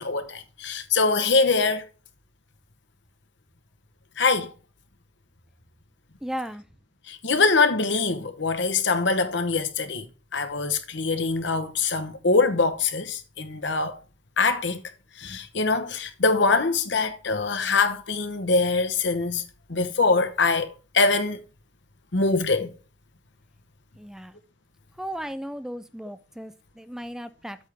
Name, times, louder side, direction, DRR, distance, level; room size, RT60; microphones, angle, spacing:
voice 1, 0.0-1.8 4.2-4.5 7.1-10.1 10.3-14.0 14.4-14.8 15.2-19.4 19.7-21.4 22.1-22.7, left 4 dB, 70° left, 1.0 m, -23 dB
voice 2, 6.2-6.6 24.0-24.4 25.0-27.6, equal, 5° right, 0.3 m, -35 dB
8.3 x 3.6 x 6.6 m
head